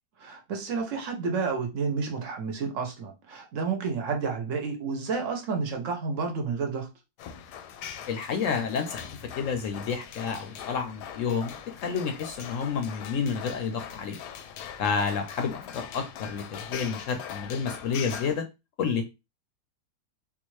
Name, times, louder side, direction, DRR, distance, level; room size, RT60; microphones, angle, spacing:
voice 1, 0.2-6.9, right 5 dB, 60° right, 1.0 m, -30 dB
sound 1, 7.2-18.4, left 8 dB, 85° left, 1.1 m, -41 dB
voice 2, 8.1-9.1 9.4-14.2 14.8-18.4 18.8-19.0, left 6 dB, 65° left, 0.8 m, -30 dB
3.7 x 2.4 x 3.1 m
omnidirectional pair, 1.7 m